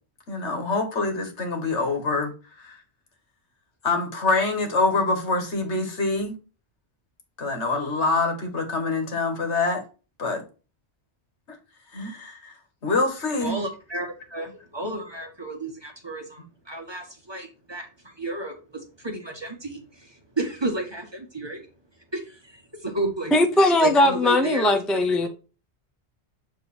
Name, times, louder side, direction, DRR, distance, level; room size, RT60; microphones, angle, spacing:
voice 1, 0.3-2.3 2.6-2.8 3.8-6.3 7.4-9.8 10.2-10.4 11.9-12.5 12.8-13.6, left 3 dB, 80° left, 1.8 m, -25 dB
voice 2, 13.4-21.7 22.1-23.3 23.8-25.3, right 2 dB, 25° right, 1.4 m, -32 dB
voice 3, 23.3-25.3, left 1 dB, ahead, 0.6 m, -19 dB
7.4 x 3.6 x 4.2 m
omnidirectional pair, 1.1 m